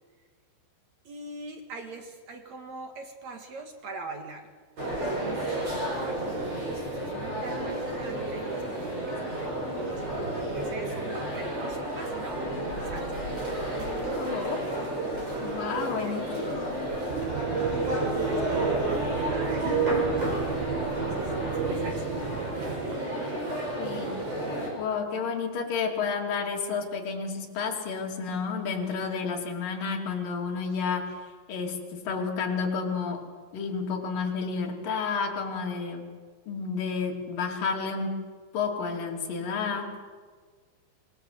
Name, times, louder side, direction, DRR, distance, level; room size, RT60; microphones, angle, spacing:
voice 1, 1.0-4.5 4.8-12.4 12.8-13.2 16.0-16.5 17.5-20.1 20.6-22.2 22.9-23.0, right 3 dB, 55° right, 5 dB, 2.1 m, -42 dB
sound 1, 4.8-24.7, right 1 dB, 30° right, 7.7 m, -31 dB
voice 2, 14.2-14.7 15.4-16.8 23.8-24.1 24.7-31.2 31.5-33.2 33.5-36.1 36.5-38.2 38.5-40.1, left 5 dB, 50° left, 1 dB, 4.1 m, -31 dB
sound 2, 17.1-23.0, right 8 dB, 85° right, 3.3 m, -34 dB
26.0 x 20.0 x 8.0 m, 1.5 s
omnidirectional pair, 5.3 m